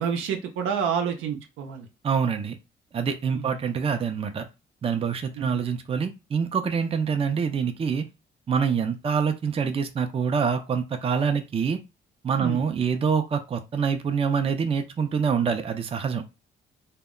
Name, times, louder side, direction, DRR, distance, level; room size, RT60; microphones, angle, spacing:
voice 1, 0.0-1.9 3.3-3.6 5.3-5.6 12.4-12.6, right 7 dB, 85° right, 0.6 m, -29 dB
voice 2, 2.0-2.6 2.9-4.5 4.8-8.1 8.5-11.8 12.2-16.2, right 6 dB, 30° right, 0.4 m, -25 dB
2.1 x 2.1 x 3.7 m
cardioid pair, 90°, 20 cm